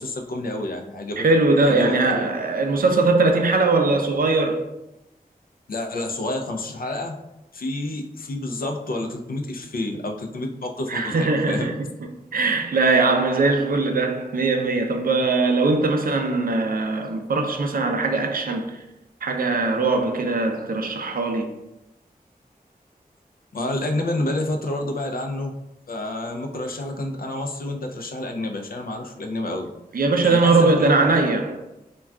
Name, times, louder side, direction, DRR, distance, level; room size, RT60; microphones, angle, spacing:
voice 1, 0.0-1.2 1.6-2.3 5.7-7.2 7.5-11.7 23.5-25.5 25.9-29.7 30.2-31.1, left 1 dB, 70° left, 0.4 m, -29 dB
voice 2, 1.2-4.7 10.9-11.7 12.3-18.8 19.2-21.5 29.9-31.6, right 3 dB, 65° right, 0.4 m, -20 dB
2.2 x 2.2 x 3.5 m
wide cardioid pair, 80°, 16 cm